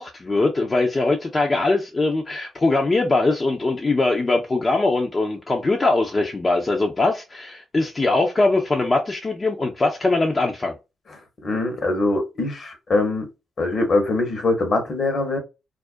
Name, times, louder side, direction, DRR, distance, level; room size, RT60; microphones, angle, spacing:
voice 1, 0.0-10.7, left 2 dB, 35° left, 0.5 m, -21 dB
voice 2, 11.4-13.3 13.6-15.4, left 2 dB, 55° left, 0.9 m, -22 dB
2.4 x 2.1 x 2.4 m
supercardioid pair, 50°, 0 cm